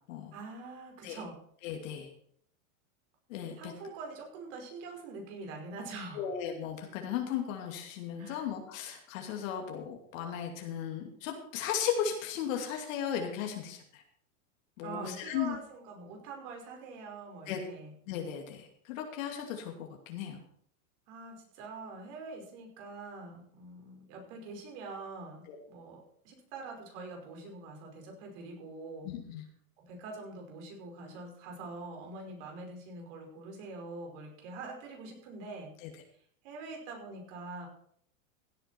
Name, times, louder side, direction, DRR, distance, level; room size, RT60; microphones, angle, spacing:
voice 1, 0.3-1.4 3.6-6.3 8.2-8.5 14.8-17.9 21.1-29.1 29.8-35.7 36.4-37.7, right 3 dB, 55° right, 1 dB, 5.4 m, -44 dB
voice 2, 1.6-2.1 3.3-3.7 6.1-14.0 14.8-15.6 17.5-17.6 18.1-20.4 25.5-25.6 29.0-29.4 35.8-35.9, left 8 dB, 65° left, 2 dB, 2.5 m, -36 dB
16.5 x 9.0 x 4.5 m, 0.64 s
supercardioid pair, 130°, 43 cm